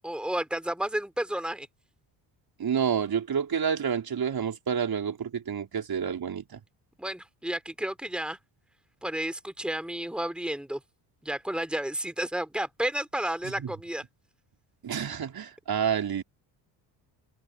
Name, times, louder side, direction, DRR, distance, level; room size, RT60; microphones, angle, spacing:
voice 1, 0.0-1.7 7.0-8.4 9.0-10.8 11.2-14.0, right 1 dB, ahead, 3.4 m, -31 dB
voice 2, 2.6-6.6 13.6-13.7 14.8-16.2, right 7 dB, 45° right, 4.4 m, -29 dB
supercardioid pair, 75°, 49 cm